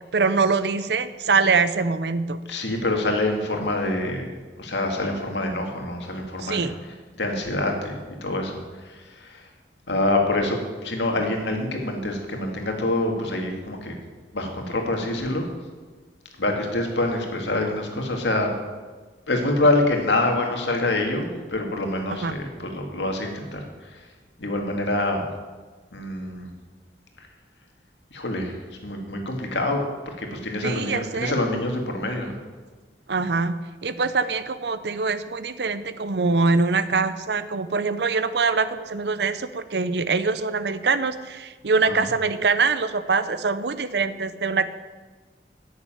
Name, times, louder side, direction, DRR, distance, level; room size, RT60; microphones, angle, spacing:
voice 1, 0.1-2.4 6.4-6.7 22.2-22.4 30.6-31.4 33.1-44.7, right 4 dB, 70° right, 13 dB, 0.7 m, -23 dB
voice 2, 2.5-4.3 4.6-9.5 9.9-14.0 14.3-15.5 16.4-18.5 19.3-24.1 24.4-25.3 25.9-26.5 27.2-27.3 28.1-29.8 30.2-32.4 41.9-42.1, left 2 dB, 90° left, 2 dB, 2.1 m, -26 dB
9.8 x 6.9 x 9.0 m, 1.3 s
head